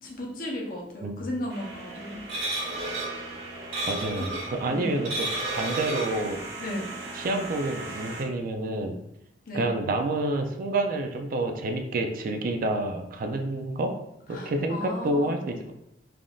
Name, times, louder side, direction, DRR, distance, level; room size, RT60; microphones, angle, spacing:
voice 1, 0.0-2.2 4.7-5.0 6.6-6.9 9.5-9.7 14.3-15.4, left 1 dB, 50° left, -1 dB, 0.7 m, -35 dB
sound 1, 1.5-8.2, right 2 dB, 70° right, 1.1 m, -34 dB
voice 2, 3.9-5.3 5.5-6.4 7.1-9.0 9.5-13.9 14.3-15.7, right 2 dB, 50° right, 5 dB, 0.3 m, -28 dB
3.4 x 2.5 x 2.3 m, 0.82 s
head